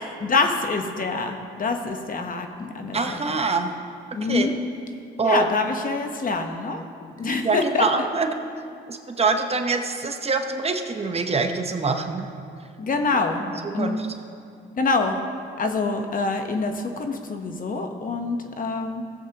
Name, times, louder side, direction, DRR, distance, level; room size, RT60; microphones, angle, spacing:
voice 1, 0.2-3.4 4.1-4.6 5.2-6.8 7.2-8.1 12.8-13.4 13.7-14.0 14.8-15.2 15.6-19.0, left 3 dB, 45° left, 5 dB, 1.0 m, -25 dB
voice 2, 2.9-3.7 4.3-4.5 5.2-5.5 7.4-8.3 8.9-12.3 13.4-14.1, right 4 dB, 30° right, 5 dB, 0.8 m, -25 dB
17.5 x 7.4 x 2.9 m, 2.4 s
cardioid pair, 90°, 20 cm